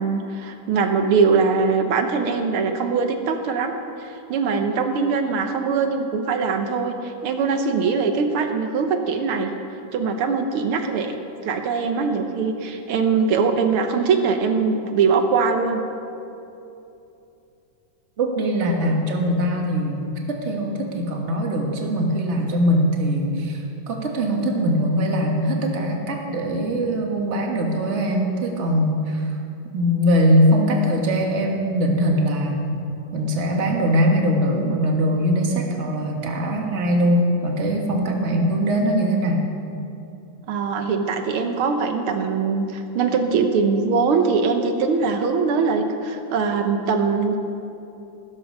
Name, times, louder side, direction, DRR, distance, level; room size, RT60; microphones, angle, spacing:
voice 1, 0.0-3.7 4.0-9.5 9.9-11.1 11.5-15.8 40.5-47.4, right 5 dB, 85° right, 6 dB, 1.9 m, -22 dB
voice 2, 18.2-29.3 29.7-32.8 33.1-39.4, equal, 35° right, 1 dB, 1.7 m, -21 dB
14.0 x 13.0 x 5.4 m, 2.7 s
omnidirectional pair, 2.3 m